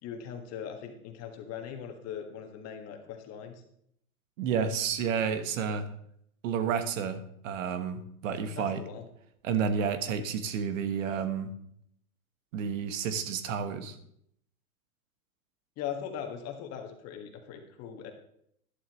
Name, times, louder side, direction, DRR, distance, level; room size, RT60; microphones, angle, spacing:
voice 1, 0.0-3.6 8.5-9.0 15.8-18.1, left 8 dB, 35° left, 4 dB, 1.7 m, -40 dB
voice 2, 4.4-5.9 6.4-8.8 9.4-11.5 12.5-14.0, right 7 dB, 60° right, 10 dB, 1.3 m, -30 dB
11.5 x 11.0 x 3.1 m, 0.71 s
hypercardioid pair, 130°, 44 cm